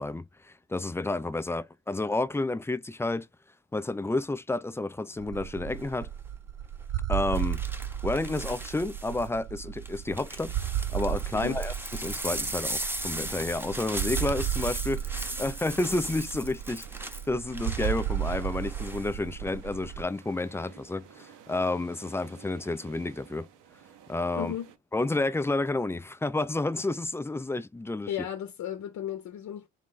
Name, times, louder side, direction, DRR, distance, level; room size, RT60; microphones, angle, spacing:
voice 1, 0.0-3.3 3.7-6.1 7.1-7.6 8.0-10.5 10.9-23.5 24.1-24.5 24.9-28.1, left 2 dB, 10° left, 0.4 m, -30 dB
sound 1, 5.2-20.0, right 11 dB, 55° right, 0.5 m, -34 dB
sound 2, 5.7-6.0 7.3-9.3 9.8-19.1 19.5-19.9, right 1 dB, 5° right, 0.7 m, -38 dB
sound 3, 13.0-24.8, right 10 dB, 85° right, 0.8 m, -54 dB
voice 2, 24.4-24.7 28.1-29.7, left 10 dB, 70° left, 0.7 m, -35 dB
3.7 x 3.0 x 3.7 m
cardioid pair, 90°, 30 cm